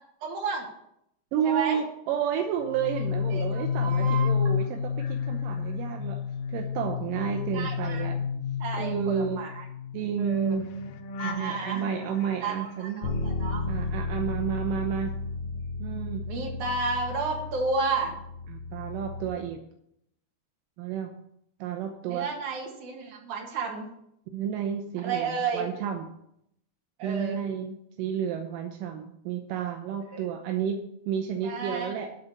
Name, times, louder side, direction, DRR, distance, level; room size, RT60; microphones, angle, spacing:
voice 1, 0.2-0.7 1.4-1.8 3.4-4.3 7.5-8.1 8.6-9.6 10.2-10.6 11.2-11.8 12.4-13.6 16.3-18.1 22.0-23.9 25.0-25.7 27.0-27.4 30.1-30.2 31.4-31.9, right 4 dB, 55° right, 0 dB, 3.1 m, -32 dB
voice 2, 1.3-6.2 6.5-8.2 8.7-9.4 9.9-10.6 11.2-13.1 13.7-15.1 15.8-16.3 18.5-19.6 20.8-21.1 21.6-22.3 24.3-26.1 27.0-30.8 31.1-32.1, right 8 dB, 75° right, 4 dB, 2.1 m, -31 dB
sound 1, 2.7-14.9 15.2-17.3 17.6-18.0, left 7 dB, 75° left, 2.0 m, -32 dB
Bass guitar, 13.0-19.3, left 3 dB, 55° left, 1.7 m, -33 dB
12.0 x 4.3 x 8.1 m, 0.76 s
omnidirectional pair, 4.5 m